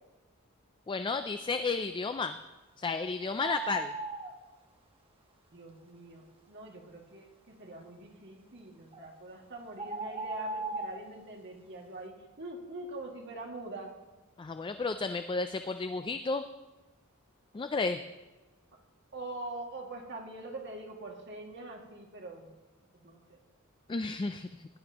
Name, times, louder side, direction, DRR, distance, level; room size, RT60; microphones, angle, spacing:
voice 1, 0.9-2.4 2.8-3.9 14.4-16.4 17.5-18.0 23.9-24.5, left 4 dB, 20° left, 9 dB, 0.3 m, -32 dB
sound 1, 3.4-4.3 8.9-9.1 9.8-11.0, right 3 dB, 25° right, 1.2 m, -37 dB
voice 2, 5.5-13.9 19.1-22.5 23.0-23.4, right 2 dB, 55° right, 0 dB, 2.1 m, -44 dB
17.0 x 11.0 x 2.9 m, 1.2 s
head